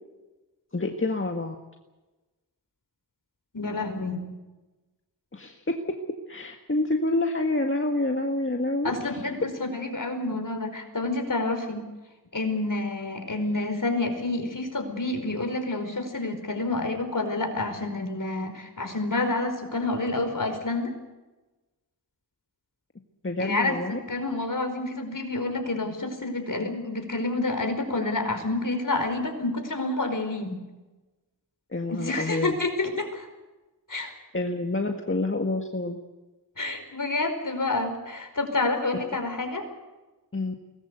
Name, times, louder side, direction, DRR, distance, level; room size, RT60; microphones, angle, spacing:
voice 1, 0.7-1.6 5.3-5.6 6.3-8.9 23.2-24.0 31.7-32.5 33.9-36.0 40.3-40.5, left 2 dB, 30° left, 3 dB, 1.9 m, -28 dB
voice 2, 3.5-4.2 8.8-11.8 12.3-20.9 23.4-30.6 31.9-33.3 33.9-34.1 36.6-39.7, left 2 dB, 50° left, 5 dB, 5.0 m, -28 dB
22.5 x 19.5 x 8.2 m, 1.1 s
cardioid pair, 45°, 40 cm